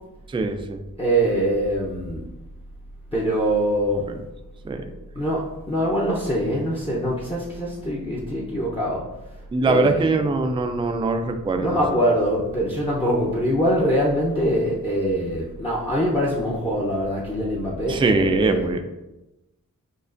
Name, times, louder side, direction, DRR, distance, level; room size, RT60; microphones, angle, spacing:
voice 1, 0.3-0.8 4.6-4.8 9.5-11.8 17.9-18.8, right 3 dB, 15° right, 6 dB, 0.3 m, -22 dB
voice 2, 1.0-2.2 3.1-4.0 5.1-9.0 9.6-10.0 11.6-18.6, equal, 15° left, -4 dB, 0.7 m, -23 dB
6.4 x 2.4 x 2.5 m, 0.99 s
wide cardioid pair, 70°, 34 cm